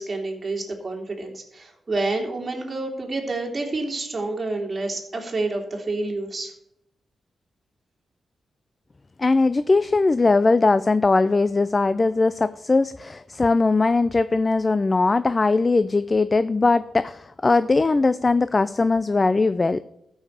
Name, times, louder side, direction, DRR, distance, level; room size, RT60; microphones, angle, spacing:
voice 1, 0.0-6.5, right 2 dB, 35° right, 0 dB, 3.0 m, -28 dB
voice 2, 9.2-19.8, left 3 dB, 35° left, 14 dB, 0.5 m, -20 dB
13.0 x 5.6 x 8.0 m, 0.81 s
cardioid pair, 60°, 0 cm